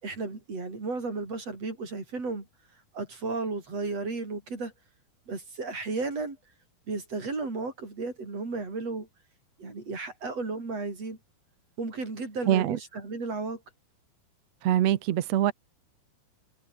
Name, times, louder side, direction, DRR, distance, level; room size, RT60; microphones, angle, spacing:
voice 1, 0.0-2.5 2.9-4.7 5.3-6.4 6.9-9.1 9.6-11.2 11.8-13.6, right 3 dB, 40° right, 7.4 m, -34 dB
voice 2, 12.5-12.8 14.6-15.5, right 12 dB, 65° right, 1.8 m, -24 dB
omnidirectional pair, 4.5 m